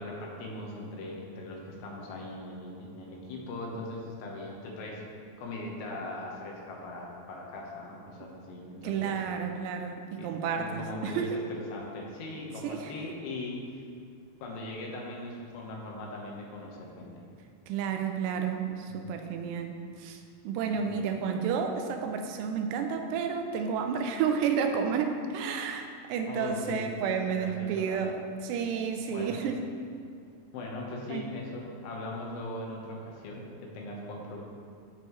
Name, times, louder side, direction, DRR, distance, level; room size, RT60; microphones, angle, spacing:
voice 1, 0.0-5.0 5.4-9.2 10.2-13.8 14.4-17.1 18.9-19.1 20.7-21.0 26.3-26.9 27.2-28.0 29.1-29.4 30.5-34.4, left 2 dB, 75° left, -2 dB, 3.2 m, -40 dB
voice 2, 8.8-11.4 12.6-12.9 17.7-29.6 31.1-31.3, right 6 dB, 85° right, 5 dB, 2.7 m, -31 dB
15.0 x 5.3 x 3.1 m, 2.3 s
omnidirectional pair, 4.9 m